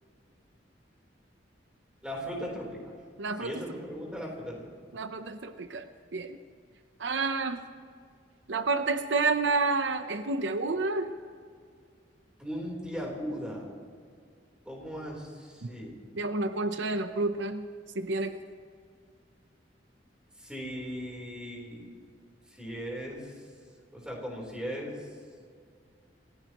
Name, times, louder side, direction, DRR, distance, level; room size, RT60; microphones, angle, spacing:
voice 1, 2.0-2.8 3.4-4.6 12.4-13.7 14.6-16.0 20.4-21.9 22.6-23.2 23.9-25.0, equal, 5° right, -2 dB, 3.7 m, -37 dB
voice 2, 3.2-3.6 4.9-5.9 6.1-6.4 7.0-7.6 8.5-11.1 15.6-15.7 16.2-17.6 17.9-18.4, right 3 dB, 75° right, 9 dB, 0.7 m, -29 dB
27.5 x 15.5 x 3.0 m, 2.1 s
head